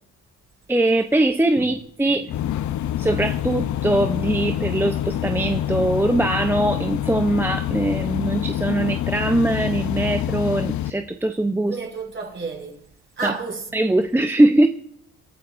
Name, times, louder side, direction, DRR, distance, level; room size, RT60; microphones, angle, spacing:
voice 1, 0.7-2.3 3.0-11.8 13.2-13.3 13.7-14.7, right 1 dB, 5° right, 0.7 m, -21 dB
sound 1, 2.3-10.9, left 12 dB, 70° left, 0.7 m, -26 dB
voice 2, 11.7-12.8 13.2-13.7, right 4 dB, 35° right, 5.7 m, -31 dB
28.0 x 12.5 x 2.6 m
cardioid pair, 90°, 30 cm